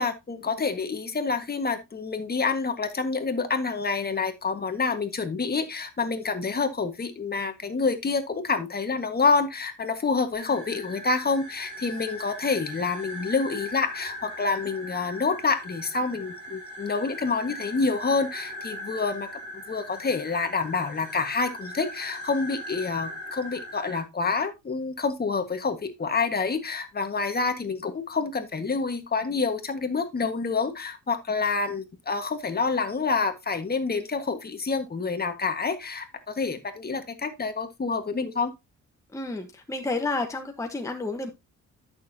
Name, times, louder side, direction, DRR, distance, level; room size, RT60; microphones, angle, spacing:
voice 1, 0.0-19.3 19.5-38.5, left 4 dB, 30° left, 1.6 m, -27 dB
sound 1, 10.3-24.0, left 1 dB, 40° right, 6.4 m, -39 dB
voice 2, 39.1-41.3, left 3 dB, 10° left, 1.2 m, -30 dB
11.5 x 6.6 x 2.8 m
cardioid pair, 90°, 30 cm